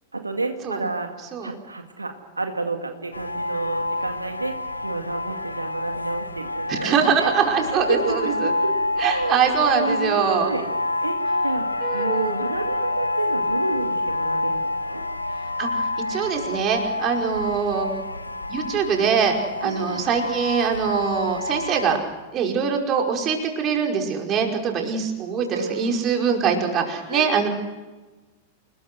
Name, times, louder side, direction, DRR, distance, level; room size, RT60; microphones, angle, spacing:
voice 1, 0.1-1.1 1.4-4.6 4.8-7.3 7.9-10.7 11.0-11.2 11.4-15.0 19.6-20.1 25.5-26.0 27.1-27.3, right 3 dB, 85° right, 5 dB, 2.1 m, -30 dB
sound 1, 3.1-22.0, left 2 dB, 90° left, 1.7 m, -28 dB
voice 2, 6.7-8.5 9.0-10.5 11.8-12.3 15.6-15.7 16.1-18.0 18.5-19.3 19.6-22.0 22.3-27.5, right 6 dB, 30° right, 2 dB, 5.2 m, -23 dB
28.5 x 21.0 x 6.3 m, 1.2 s
figure-of-eight pair, 95°, 0 cm